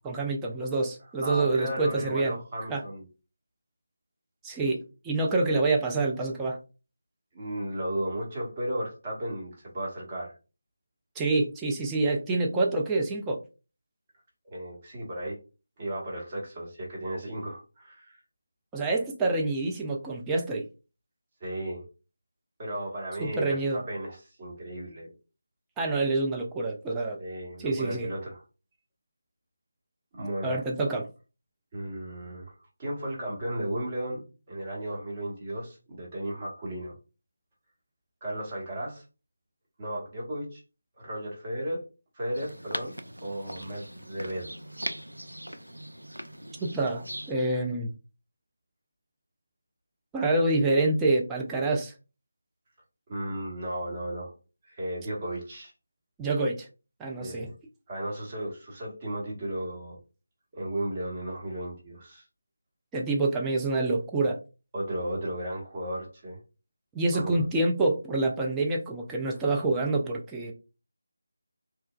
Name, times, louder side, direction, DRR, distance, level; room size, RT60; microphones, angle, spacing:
voice 1, 0.0-2.4 2.7-2.8 4.4-6.6 11.2-13.4 18.7-20.6 23.2-23.8 25.8-27.2 27.6-28.1 30.4-31.1 46.6-47.9 50.1-51.9 56.2-56.7 57.0-57.5 62.9-64.4 66.9-70.5, right 2 dB, 10° right, -1 dB, 0.3 m, -27 dB
voice 2, 1.2-3.1 7.3-10.3 14.4-15.4 15.8-18.2 21.4-21.8 22.6-25.2 27.2-28.4 30.1-30.6 31.7-32.5 32.8-37.0 38.2-39.0 39.8-40.6 41.0-41.9 42.1-42.9 43.2-44.5 53.1-54.3 54.6-55.7 57.2-57.5 57.9-60.0 60.5-62.2 64.7-66.4 67.1-67.4, right 1 dB, 25° right, -3 dB, 1.0 m, -34 dB
sound 1, 42.3-47.3, right 1 dB, 80° right, 0.3 m, -40 dB
2.9 x 2.2 x 2.2 m, 0.31 s
figure-of-eight pair, 160°, 0 cm